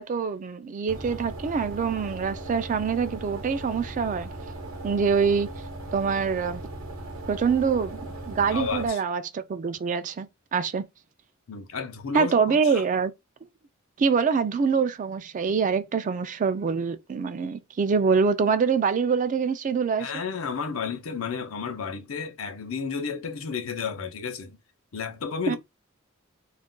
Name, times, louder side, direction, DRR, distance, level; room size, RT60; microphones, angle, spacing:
voice 1, 0.0-4.3 4.8-5.5 5.9-6.6 7.3-10.8 12.1-13.1 14.0-20.1 25.5-25.6, right 5 dB, 40° right, 0.3 m, -25 dB
sound 1, 0.9-8.9, right 1 dB, 90° right, 0.8 m, -38 dB
voice 2, 8.5-9.0 11.5-12.8 20.0-24.6 24.9-25.6, left 5 dB, 85° left, 0.6 m, -32 dB
2.4 x 2.2 x 3.6 m
head